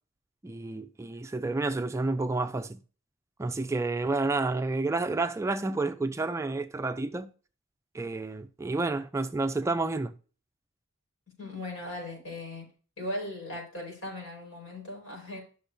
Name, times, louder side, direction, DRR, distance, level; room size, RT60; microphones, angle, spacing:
voice 1, 0.4-2.8 3.4-7.3 7.9-10.1, right 3 dB, 15° right, 0.3 m, -30 dB
voice 2, 11.4-12.7 13.0-15.4, left 1 dB, 85° left, 4.5 m, -38 dB
11.5 x 6.3 x 2.6 m
head